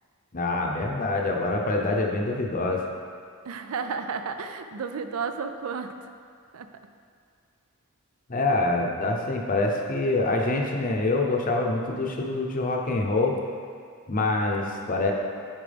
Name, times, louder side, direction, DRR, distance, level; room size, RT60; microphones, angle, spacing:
voice 1, 0.3-2.8 8.3-13.4 14.1-15.1, left 2 dB, 40° left, 1 dB, 0.7 m, -25 dB
voice 2, 3.4-6.1 6.5-6.7, right 5 dB, 85° right, 8 dB, 0.4 m, -32 dB
8.9 x 4.5 x 3.4 m, 2.2 s
head